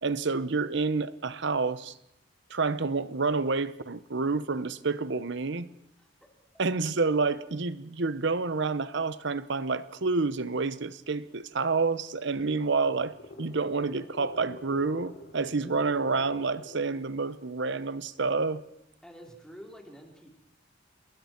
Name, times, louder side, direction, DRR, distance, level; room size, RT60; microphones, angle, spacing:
voice 1, 0.0-1.9 2.5-5.7 6.6-18.6, right 4 dB, 65° right, 0.9 m, -29 dB
sound 1, 12.2-17.1, left 1 dB, 60° left, 3.1 m, -47 dB
voice 2, 19.0-20.3, equal, 5° left, 3.7 m, -48 dB
29.0 x 20.5 x 4.5 m
head